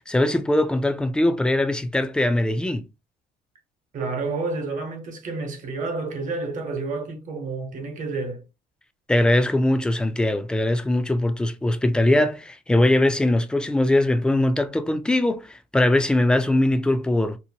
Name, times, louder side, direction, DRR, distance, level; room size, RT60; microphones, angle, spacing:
voice 1, 0.0-2.9 9.1-17.4, left 1 dB, 5° left, 0.3 m, -21 dB
voice 2, 3.9-8.4, right 3 dB, 50° right, 1.0 m, -30 dB
2.7 x 2.2 x 2.7 m
cardioid pair, 110°, 17 cm